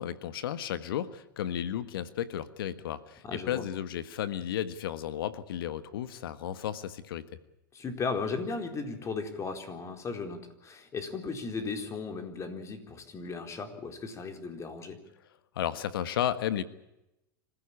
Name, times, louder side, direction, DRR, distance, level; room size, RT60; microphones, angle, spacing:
voice 1, 0.0-7.2 15.5-16.6, left 10 dB, 80° left, 13 dB, 1.5 m, -33 dB
voice 2, 3.2-3.6 7.7-15.0, left 4 dB, 25° left, 6 dB, 4.2 m, -36 dB
26.0 x 15.5 x 8.5 m, 0.90 s
hypercardioid pair, 120°, 12 cm